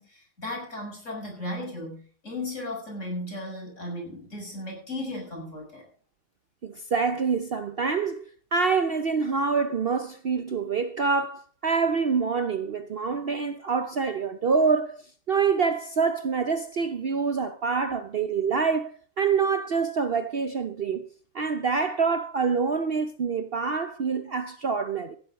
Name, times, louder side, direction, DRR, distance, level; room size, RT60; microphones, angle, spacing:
voice 1, 0.0-5.8, left 1 dB, 40° left, 6.9 m, -36 dB
voice 2, 6.6-15.0 15.3-18.9 19.2-21.1 21.3-25.2, right 5 dB, 85° right, 0.5 m, -26 dB
15.5 x 9.5 x 5.3 m
omnidirectional pair, 2.1 m